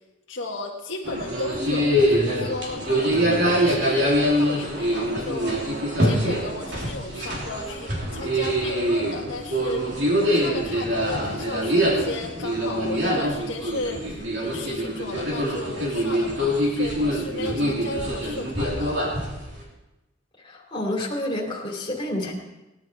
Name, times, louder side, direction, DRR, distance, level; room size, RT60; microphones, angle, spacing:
voice 1, 0.3-19.0, left 2 dB, 70° left, -1 dB, 1.7 m, -34 dB
sound 1, 1.0-19.6, equal, 55° right, 3.1 m, -24 dB
voice 2, 20.4-22.3, left 1 dB, 25° left, -2 dB, 2.6 m, -29 dB
18.0 x 10.5 x 4.5 m, 1.0 s
head